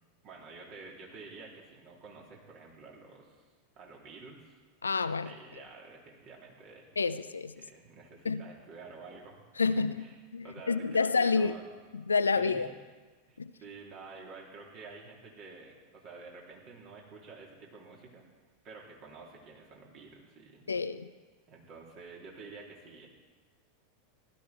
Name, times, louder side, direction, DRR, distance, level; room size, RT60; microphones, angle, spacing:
voice 1, 0.2-3.4 3.7-4.5 5.2-6.9 7.6-10.1 10.4-11.6 12.4-12.7 13.3-18.2 18.6-20.7 21.5-23.1, right 4 dB, 45° right, -2 dB, 3.3 m, -49 dB
voice 2, 4.8-5.3 7.0-7.5 8.2-8.4 9.6-10.0 10.3-11.5 11.9-12.7 13.4-13.5 20.7-21.1, left 4 dB, 80° left, 14 dB, 0.5 m, -28 dB
15.5 x 12.5 x 4.4 m, 1.4 s
figure-of-eight pair, 85°, 0 cm